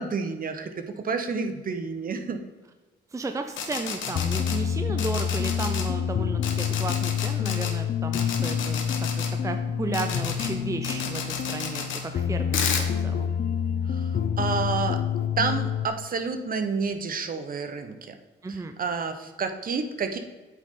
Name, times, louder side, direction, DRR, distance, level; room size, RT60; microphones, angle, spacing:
voice 1, 0.0-2.4 13.9-15.0 15.4-18.2 18.5-20.2, right 5 dB, 45° right, 7 dB, 1.0 m, -30 dB
voice 2, 3.1-8.8 9.4-13.3 18.4-18.8, right 3 dB, 15° right, 7 dB, 0.6 m, -34 dB
sound 1, 3.5-4.6 5.0-5.8 6.4-7.7 8.1-9.3 9.9-10.5 10.8-12.0 12.5-12.9, left 7 dB, 75° left, 1.3 m, -31 dB
sound 2, 4.1-15.9, left 8 dB, 45° left, 0.5 m, -28 dB
8.3 x 6.4 x 3.7 m, 1.3 s
cardioid pair, 90°, 20 cm